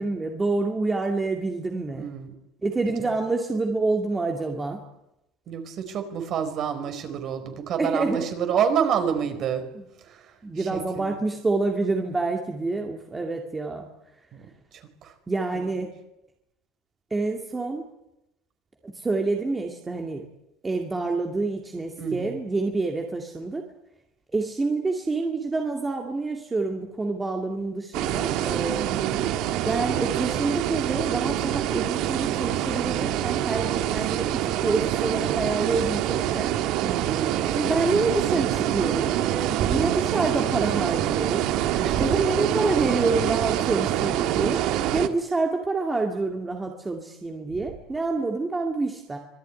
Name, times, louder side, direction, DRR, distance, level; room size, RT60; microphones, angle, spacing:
voice 1, 0.0-2.1 2.6-4.8 7.8-8.3 9.7-9.8 10.4-13.9 15.3-15.9 17.1-17.8 18.8-20.2 20.6-23.6 24.3-28.8 29.6-36.5 37.5-39.1 39.7-41.5 42.0-44.6 44.9-49.2, right 3 dB, 10° right, 2 dB, 2.3 m, -27 dB
voice 2, 1.9-2.3 3.0-3.1 5.5-9.7 10.1-10.3 10.6-11.1 15.0-15.1 15.5-15.7 22.0-22.4 28.8-29.2 36.8-37.3 39.2-39.8 41.7-42.0, right 7 dB, 40° right, 8 dB, 4.2 m, -28 dB
sound 1, 27.9-45.1, right 12 dB, 60° right, 1.7 m, -26 dB
25.5 x 19.0 x 9.6 m, 0.87 s
cardioid pair, 165°, 0 cm